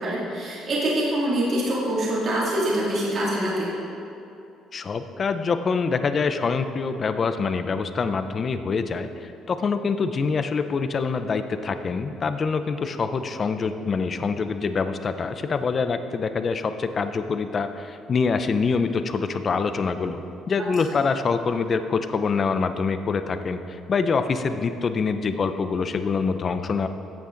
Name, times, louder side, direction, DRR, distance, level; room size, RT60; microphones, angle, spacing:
voice 1, 0.0-3.7 20.6-20.7, right 1 dB, 40° right, -6 dB, 2.4 m, -25 dB
voice 2, 4.7-26.9, left 5 dB, 30° left, 9 dB, 0.5 m, -25 dB
14.5 x 8.5 x 3.9 m, 2.7 s
cardioid pair, 150°, 0 cm